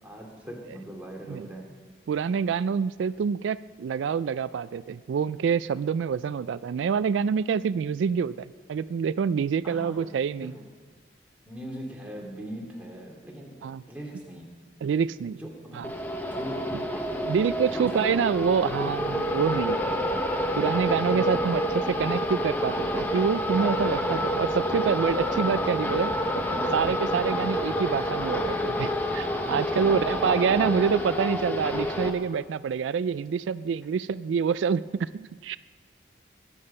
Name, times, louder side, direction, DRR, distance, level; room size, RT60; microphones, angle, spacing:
voice 1, 0.0-1.8 9.6-10.1 10.4-10.7 11.4-14.5 15.4-15.9 16.4-18.6 21.2-21.4 27.3-27.6 29.7-30.7, right 1 dB, 10° right, -2 dB, 2.4 m, -40 dB
voice 2, 2.1-10.5 13.6-13.8 14.8-15.4 15.7-15.9 16.7-16.8 17.3-19.8 20.6-21.6 21.9-26.1 26.7-35.6, right 6 dB, 85° right, 16 dB, 0.3 m, -26 dB
sound 1, 15.8-32.1, equal, 10° left, 1.0 m, -28 dB
21.5 x 8.7 x 5.5 m, 1.5 s
head